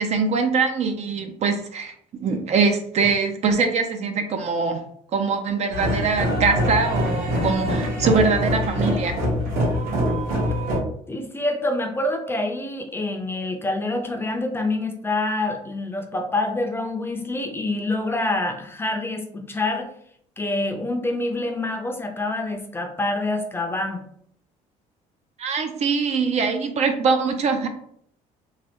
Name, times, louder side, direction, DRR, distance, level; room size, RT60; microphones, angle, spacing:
voice 1, 0.0-1.9 2.2-4.8 5.1-9.2 25.4-27.7, right 4 dB, 45° right, 6 dB, 0.5 m, -23 dB
sound 1, 5.7-10.8, equal, 70° right, 1.3 m, -24 dB
voice 2, 11.1-19.9 20.4-24.0, left 2 dB, 15° left, 3 dB, 0.5 m, -26 dB
3.2 x 2.3 x 2.8 m, 0.67 s
cardioid pair, 95°, 15 cm